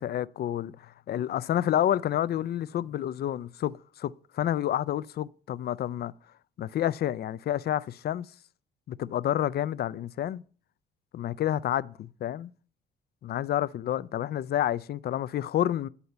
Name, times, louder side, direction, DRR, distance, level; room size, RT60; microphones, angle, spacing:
voice 1, 0.0-6.1 6.6-8.3 8.9-10.4 11.1-12.5 13.2-15.9, left 11 dB, 55° left, 0.4 m, -29 dB
9.5 x 4.2 x 6.8 m
cardioid pair, 90°, 20 cm